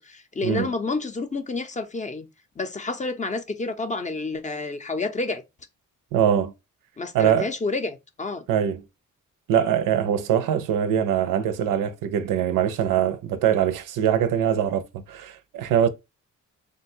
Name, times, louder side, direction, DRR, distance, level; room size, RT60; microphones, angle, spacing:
voice 1, 0.0-2.3 2.6-5.4 7.0-8.4, left 3 dB, 25° left, 0.5 m, -29 dB
voice 2, 6.1-6.5 7.1-7.5 8.5-8.8 9.5-15.9, right 9 dB, 90° right, 0.5 m, -23 dB
3.6 x 2.2 x 2.5 m
cardioid pair, 90°, 32 cm